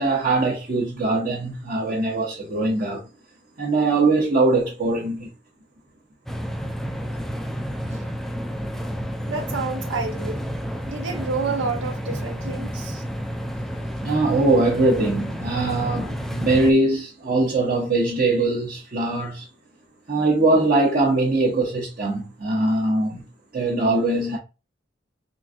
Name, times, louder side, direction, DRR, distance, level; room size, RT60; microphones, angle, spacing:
voice 1, 0.0-3.0 3.6-5.3 14.0-19.5 20.1-23.2 23.5-24.4, right 2 dB, 45° right, 0.8 m, -21 dB
sound 1, 6.3-16.7, equal, ahead, 0.3 m, -30 dB
voice 2, 9.3-10.5 10.9-13.0, right 4 dB, 80° right, 0.6 m, -29 dB
3.8 x 2.5 x 2.3 m
head